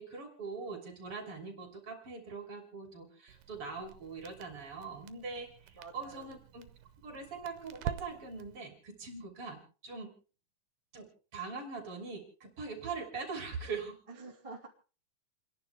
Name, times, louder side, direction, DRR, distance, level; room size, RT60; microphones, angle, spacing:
voice 1, 0.0-6.7 7.0-10.1 10.9-14.0, right 4 dB, 45° right, 4 dB, 4.0 m, -42 dB
Crackle, 3.3-8.6, right 10 dB, 80° right, 2.5 m, -46 dB
voice 2, 5.7-6.4 14.1-14.7, right 3 dB, 10° right, -1 dB, 2.2 m, -48 dB
30.0 x 10.5 x 3.4 m, 0.37 s
omnidirectional pair, 3.8 m